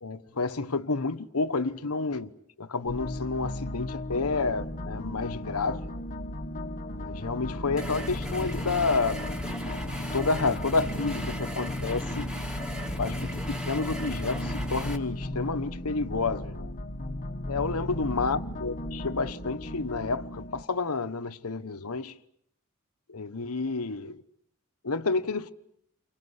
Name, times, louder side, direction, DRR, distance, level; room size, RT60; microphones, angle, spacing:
voice 1, 0.0-2.3 2.6-5.9 6.9-9.4 9.7-9.8 10.1-12.3 13.0-16.7 17.5-22.2 23.1-24.2 24.8-25.5, left 3 dB, 85° left, 1.1 m, -30 dB
sound 1, 2.9-20.6, left 1 dB, 40° left, 1.3 m, -35 dB
sound 2, 7.8-15.0, equal, 5° right, 2.8 m, -38 dB
29.5 x 25.0 x 8.1 m
head